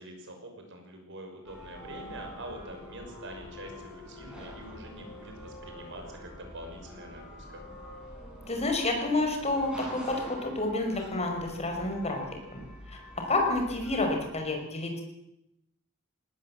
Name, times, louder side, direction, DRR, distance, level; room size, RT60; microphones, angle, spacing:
voice 1, 0.0-7.6, right 1 dB, 60° right, 4 dB, 6.0 m, -45 dB
sound 1, 1.4-14.4, equal, 5° right, 6.7 m, -46 dB
voice 2, 8.5-12.2 12.5-12.6 12.9-13.0 13.3-15.0, left 2 dB, 30° left, 3 dB, 5.4 m, -29 dB
20.0 x 18.5 x 7.7 m, 0.85 s
head